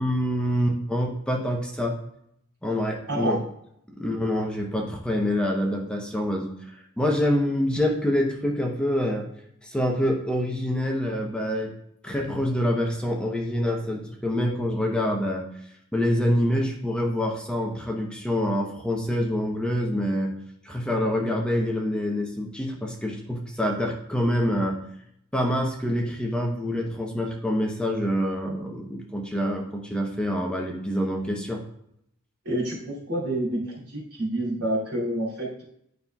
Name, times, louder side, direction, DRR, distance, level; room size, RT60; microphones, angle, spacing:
voice 1, 0.0-1.9 2.6-3.4 4.0-6.5 7.0-9.3 9.6-11.7 12.0-15.4 15.9-20.4 20.6-24.8 25.3-31.6, equal, 5° left, 0 dB, 0.7 m, -26 dB
voice 2, 3.1-3.4 32.4-35.6, right 1 dB, 85° right, -4 dB, 2.6 m, -28 dB
9.4 x 5.6 x 2.3 m, 0.74 s
head